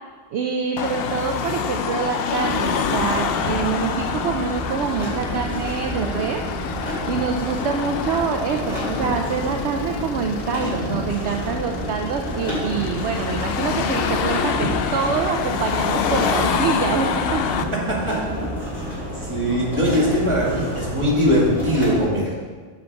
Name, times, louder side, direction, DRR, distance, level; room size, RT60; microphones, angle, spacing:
voice 1, 0.3-6.4 7.1-17.4, right 6 dB, 65° right, 3 dB, 0.8 m, -25 dB
Car passing by / Traffic noise roadway noise / Engine, 0.8-17.6, left 7 dB, 65° left, 0.6 m, -27 dB
sound 1, 2.4-22.1, equal, 30° left, 2.8 m, -30 dB
voice 2, 17.7-18.2 19.2-22.4, equal, 20° right, -4 dB, 2.2 m, -21 dB
7.8 x 4.5 x 6.9 m, 1.5 s
omnidirectional pair, 1.3 m